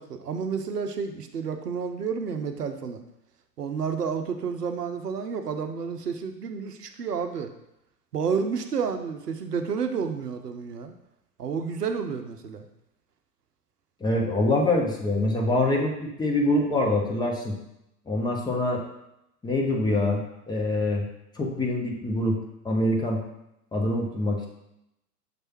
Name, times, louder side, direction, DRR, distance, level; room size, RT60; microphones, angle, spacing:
voice 1, 0.0-3.0 3.6-7.5 8.1-10.9 11.4-12.7, right 6 dB, 75° right, 7 dB, 0.7 m, -30 dB
voice 2, 14.0-17.6 18.1-18.8 19.4-21.1 21.4-22.4 22.6-23.2 23.7-24.5, left 1 dB, 10° left, -1 dB, 0.8 m, -25 dB
6.7 x 3.3 x 4.4 m, 0.84 s
figure-of-eight pair, 95°, 48 cm